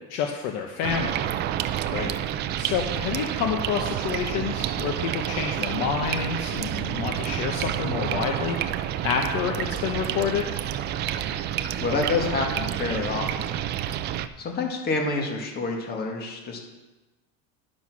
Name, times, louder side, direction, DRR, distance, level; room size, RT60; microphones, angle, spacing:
voice 1, 0.1-1.3 2.6-8.6 9.0-10.5, left 7 dB, 55° left, 3 dB, 1.1 m, -28 dB
sound 1, 0.8-14.3, right 11 dB, 30° right, 0.4 m, -29 dB
voice 2, 11.8-13.5 14.4-16.6, left 3 dB, 30° left, 1 dB, 1.9 m, -28 dB
10.5 x 6.6 x 6.1 m, 1.2 s
cardioid pair, 150°, 32 cm